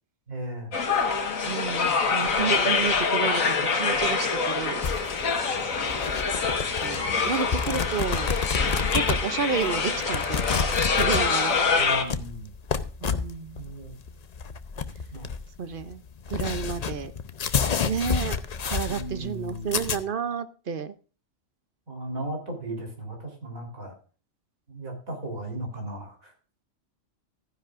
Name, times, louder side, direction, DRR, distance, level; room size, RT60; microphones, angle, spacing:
voice 1, 0.3-0.7 11.8-12.5 13.5-13.9 15.1-15.3 18.9-20.0 21.9-23.9 24.7-26.3, right 1 dB, 90° right, 1 dB, 4.1 m, -36 dB
sound 1, 0.7-12.0, left 5 dB, 85° left, 1.8 m, -25 dB
voice 2, 1.5-4.8 6.4-6.5 6.8-8.3 8.9-10.6 11.0-11.6 13.0-13.7 15.6-16.0 16.3-17.1 17.9-18.4 18.6-20.9, right 6 dB, 50° right, 13 dB, 0.7 m, -31 dB
sound 2, 4.8-20.0, left 6 dB, 45° left, 0.6 m, -30 dB
14.5 x 10.0 x 2.5 m, 0.38 s
omnidirectional pair, 1.4 m